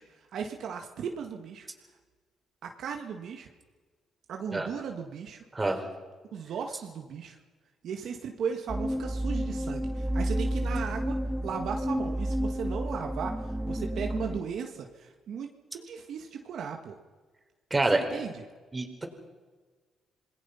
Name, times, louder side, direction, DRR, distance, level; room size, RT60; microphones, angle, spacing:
voice 1, 0.0-1.7 2.6-3.5 4.3-5.4 6.3-7.4 7.8-11.2 11.4-17.0 17.9-18.3, right 7 dB, 70° right, 3 dB, 1.9 m, -36 dB
voice 2, 5.5-5.8 17.7-18.2 18.7-19.1, right 2 dB, 20° right, 4 dB, 4.3 m, -27 dB
sound 1, 8.7-14.4, equal, ahead, 2.7 m, -31 dB
27.0 x 20.5 x 5.8 m, 1.4 s
cardioid pair, 90°, 0 cm